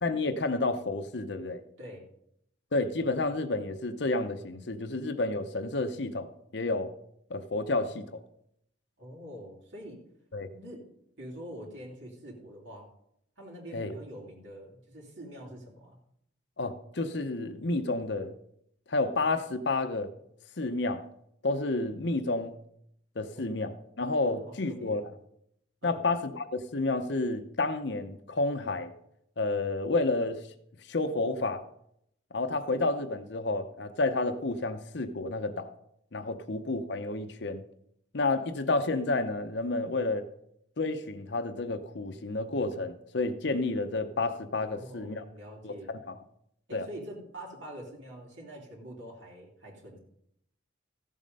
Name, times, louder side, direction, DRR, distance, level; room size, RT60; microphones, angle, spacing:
voice 1, 0.0-1.6 2.7-6.9 7.3-8.2 10.3-10.5 13.7-13.9 16.6-18.3 18.9-20.1 20.6-21.1 21.4-22.6 23.2-25.0 25.8-28.9 29.4-30.5 30.8-31.6 32.3-35.7 36.1-37.6 38.1-40.2 40.8-45.2 45.6-46.2 46.7-46.9, left 2 dB, 60° left, 0.8 m, -30 dB
voice 2, 9.0-10.0 10.5-10.9 11.2-12.9 13.4-16.0 23.3-23.5 24.2-25.1 25.8-26.0 44.7-45.9 46.7-50.0, equal, 70° right, 3.1 m, -45 dB
15.0 x 7.5 x 5.4 m
head